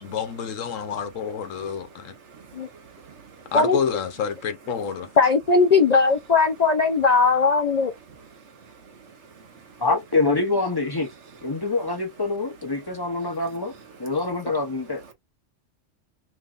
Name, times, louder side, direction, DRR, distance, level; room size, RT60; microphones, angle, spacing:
voice 1, 0.0-2.1 3.5-5.1, left 7 dB, 85° left, 1.2 m, -28 dB
voice 2, 2.3-3.4 8.4-9.7, right 5 dB, 65° right, 1.4 m, -49 dB
voice 3, 5.2-7.9, left 4 dB, 50° left, 0.5 m, -19 dB
voice 4, 9.8-11.1 11.4-13.7 14.0-15.0, left 3 dB, 20° left, 0.8 m, -25 dB
3.5 x 3.2 x 2.4 m
omnidirectional pair, 1.3 m